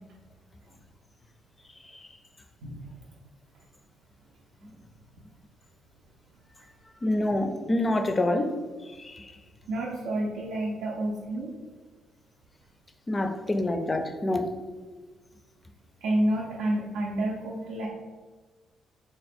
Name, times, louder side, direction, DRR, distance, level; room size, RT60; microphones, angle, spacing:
voice 1, 7.0-8.6 9.0-9.3 13.1-14.5, left 1 dB, 25° left, 0.4 m, -26 dB
voice 2, 9.7-11.5 16.0-17.9, right 1 dB, 85° right, 0.5 m, -29 dB
3.5 x 2.1 x 4.1 m
cardioid pair, 90°, 0 cm